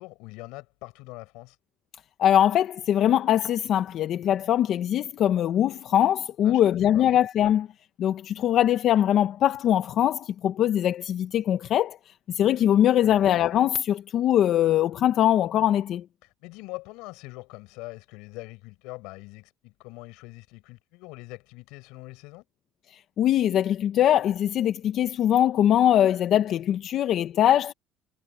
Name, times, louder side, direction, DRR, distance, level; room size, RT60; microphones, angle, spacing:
voice 1, 0.0-1.6 6.4-7.2 13.0-13.3 16.2-22.4, left 23 dB, 80° left, 6.0 m, -43 dB
voice 2, 2.2-7.7 8.0-12.0 12.3-16.0 23.2-27.7, left 11 dB, 50° left, 0.8 m, -22 dB
cardioid pair, 130°, 0 cm